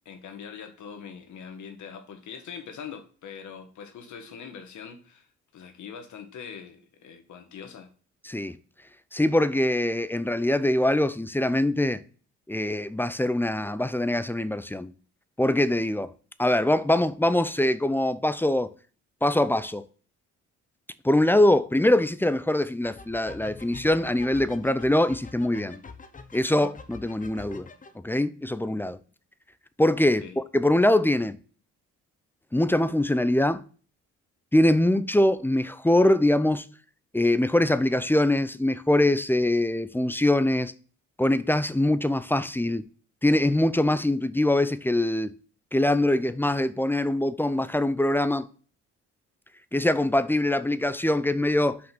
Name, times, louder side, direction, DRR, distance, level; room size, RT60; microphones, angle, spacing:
voice 1, 0.0-5.3 5.5-7.9 30.2-30.4, left 7 dB, 70° left, 1.6 m, -42 dB
voice 2, 8.2-8.6 9.1-12.0 12.5-14.9 15.4-16.1 16.4-18.7 19.2-19.9 21.0-25.8 26.3-27.7 28.0-29.0 29.8-31.4 32.5-33.6 34.5-36.7 37.1-40.7 41.2-42.8 43.2-45.3 45.7-48.5 49.7-51.8, left 1 dB, 5° left, 0.5 m, -23 dB
sound 1, 22.8-27.9, left 4 dB, 25° left, 0.9 m, -45 dB
5.7 x 5.2 x 6.0 m
cardioid pair, 90°, 30 cm